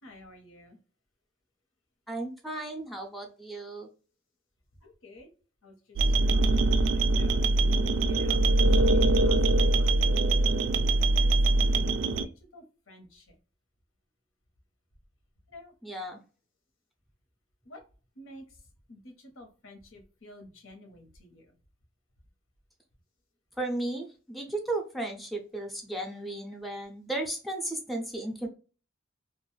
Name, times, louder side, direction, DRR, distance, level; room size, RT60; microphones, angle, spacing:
voice 1, 0.0-0.8 4.8-5.3 5.6-5.7 6.3-7.5 8.0-8.5 8.8-10.0 10.8-11.4 12.0-13.2 15.5-15.7 17.7-17.8 18.2-18.4 18.9-21.4, left 1 dB, 90° left, 4 dB, 0.9 m, -51 dB
voice 2, 2.1-3.9 15.8-16.2 23.6-28.5, right 2 dB, ahead, 2 dB, 0.4 m, -35 dB
sound 1, 6.0-12.3, right 2 dB, 65° right, 0.3 m, -23 dB
2.5 x 2.2 x 3.2 m, 0.36 s
head